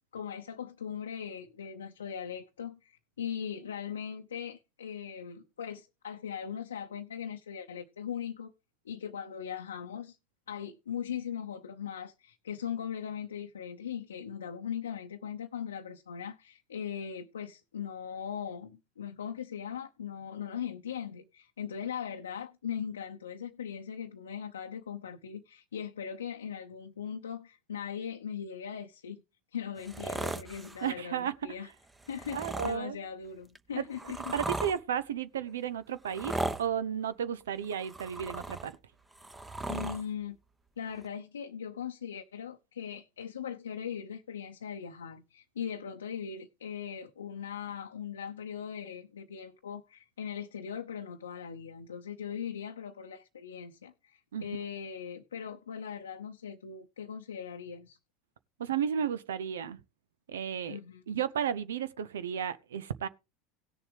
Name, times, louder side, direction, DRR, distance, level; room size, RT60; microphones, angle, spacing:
voice 1, 0.1-8.5 8.8-10.2 10.5-29.2 29.5-31.7 32.1-34.2 39.7-40.4 40.8-58.0 60.7-61.0, left 8 dB, 80° left, 0.7 m, -39 dB
sound 1, 29.8-30.9 32.0-32.8 33.5-34.8 36.0-36.6 37.6-38.7 39.1-40.0 41.0-41.1, right 2 dB, 15° right, 1.0 m, -37 dB
voice 2, 30.8-31.3 32.3-33.0 33.8-33.9 34.3-38.7 54.3-54.4 58.6-59.8 60.3-60.8 61.1-63.1, right 8 dB, 75° right, 0.6 m, -33 dB
17.5 x 7.1 x 3.4 m
hypercardioid pair, 75°, 0 cm